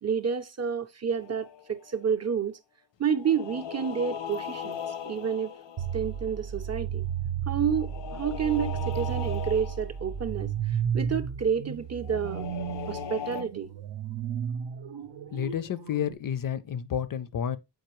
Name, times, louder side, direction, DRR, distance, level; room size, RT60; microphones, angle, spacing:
voice 1, 0.0-2.6 3.0-5.5 5.9-7.1 7.5-12.5 12.9-13.7, right 7 dB, 40° right, 0.5 m, -29 dB
sound 1, 1.1-2.0 3.1-6.7 7.7-10.1 12.0-13.4, left 9 dB, 90° left, 0.7 m, -39 dB
sound 2, 5.8-16.1, right 8 dB, 85° right, 0.7 m, -33 dB
voice 2, 15.3-17.6, left 9 dB, 50° left, 0.4 m, -30 dB
7.7 x 4.9 x 3.0 m
wide cardioid pair, 180°, 42 cm